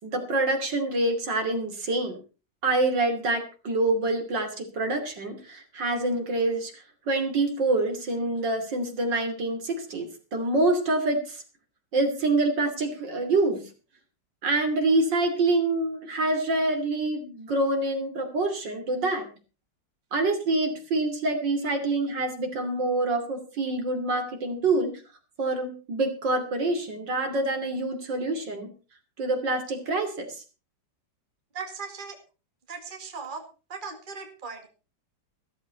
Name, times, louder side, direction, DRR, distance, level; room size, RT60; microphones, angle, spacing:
voice 1, 0.0-2.2 2.6-11.4 11.9-13.6 14.4-19.3 20.1-24.9 25.4-28.7 29.2-30.3, right 2 dB, 70° right, 5 dB, 3.5 m, -26 dB
voice 2, 31.5-32.2 32.7-33.4 33.7-34.7, right 5 dB, 25° right, 5 dB, 2.1 m, -38 dB
14.5 x 13.5 x 4.1 m, 0.34 s
omnidirectional pair, 2.0 m